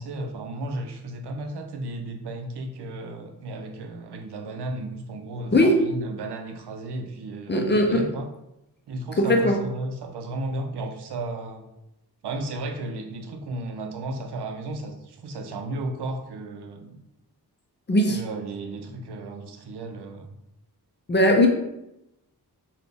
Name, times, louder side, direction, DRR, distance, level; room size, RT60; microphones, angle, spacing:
voice 1, 0.0-8.3 8.9-11.6 12.2-17.0 18.1-20.4, right 2 dB, 90° right, 4 dB, 0.6 m, -34 dB
voice 2, 7.5-8.1 9.2-9.6 17.9-18.2 21.1-21.5, left 1 dB, 30° left, 2 dB, 0.4 m, -19 dB
3.9 x 2.2 x 3.4 m, 0.87 s
wide cardioid pair, 165°, 39 cm